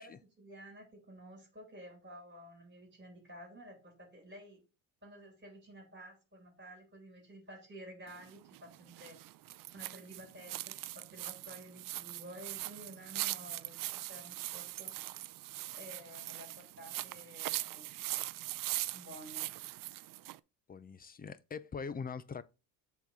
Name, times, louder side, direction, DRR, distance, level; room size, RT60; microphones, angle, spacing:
voice 1, 0.0-4.6 5.0-9.2 9.7-10.6 10.9-14.9 15.7-17.9 18.9-19.5, equal, 25° right, 3.0 m, -52 dB
sound 1, 8.1-20.4, right 16 dB, 50° right, 0.5 m, -41 dB
voice 2, 20.7-22.4, left 5 dB, 20° left, 0.5 m, -42 dB
7.3 x 3.9 x 5.3 m
cardioid pair, 110°, 43 cm